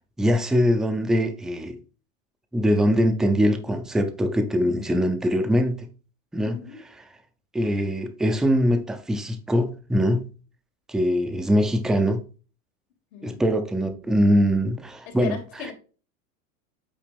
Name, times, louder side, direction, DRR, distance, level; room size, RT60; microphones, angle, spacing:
voice 1, 0.2-1.8 2.5-5.9 6.3-6.6 7.5-10.3 10.9-12.3 13.2-15.3, equal, ahead, 0.4 m, -22 dB
voice 2, 6.4-6.8 13.1-13.5 15.0-15.7, left 7 dB, 80° left, 2.6 m, -37 dB
8.5 x 2.9 x 5.1 m
supercardioid pair, 150°, 40 cm